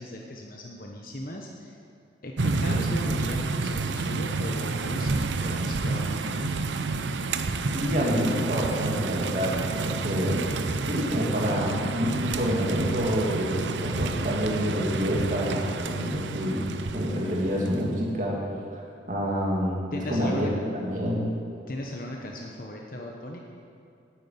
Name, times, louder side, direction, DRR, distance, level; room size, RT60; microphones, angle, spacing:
voice 1, 0.0-1.8 2.2-6.5 19.9-20.5 21.7-23.4, left 1 dB, 50° left, 0 dB, 1.1 m, -37 dB
sound 1, 2.4-17.9, right 3 dB, 90° right, 0.7 m, -29 dB
voice 2, 7.7-10.6 10.8-18.4 18.7-18.8 19.1-21.3, equal, 45° right, -3 dB, 2.6 m, -27 dB
10.0 x 9.1 x 9.3 m, 2.5 s
head